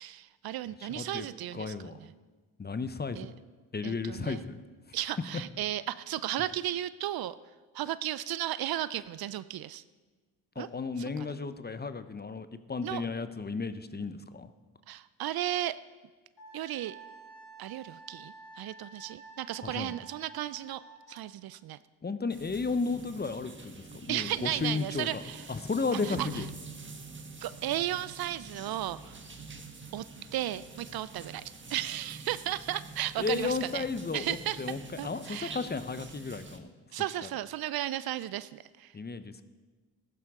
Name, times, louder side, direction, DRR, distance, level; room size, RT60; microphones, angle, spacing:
voice 1, 0.0-1.7 2.0-2.1 3.1-3.3 3.8-4.4 4.9-7.4 7.7-9.8 10.6-10.7 11.0-11.4 12.8-13.0 14.9-15.8 16.5-17.0 17.6-20.8 21.1-21.8 24.1-25.6 25.9-26.5 27.4-29.2 29.9-30.0 30.3-31.4 31.7-33.8 34.1-35.6 36.9-38.9, right 13 dB, 55° right, 16 dB, 0.5 m, -35 dB
voice 2, 0.9-1.3 1.5-1.9 2.6-3.2 3.7-4.6 10.6-14.5 19.6-19.9 22.0-23.7 24.1-25.2 25.5-26.4 33.2-36.7 38.9-39.4, left 4 dB, 20° left, 12 dB, 0.8 m, -33 dB
Wind instrument woodwind instrument, 16.4-21.2, right 3 dB, 60° left, 4.8 m, -50 dB
sound 1, 22.3-36.6, right 3 dB, 25° right, 1.6 m, -46 dB
14.5 x 12.0 x 3.7 m, 1.3 s
supercardioid pair, 55°, 45 cm